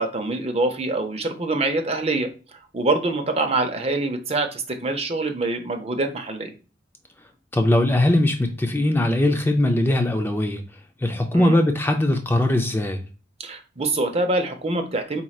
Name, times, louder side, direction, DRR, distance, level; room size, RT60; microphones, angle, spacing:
voice 1, 0.0-2.3 2.7-6.5 11.3-11.6 13.4-15.2, right 2 dB, 35° right, 0.7 m, -25 dB
voice 2, 7.5-10.6 11.0-13.0, left 1 dB, 10° left, 0.4 m, -20 dB
4.5 x 4.2 x 2.3 m
head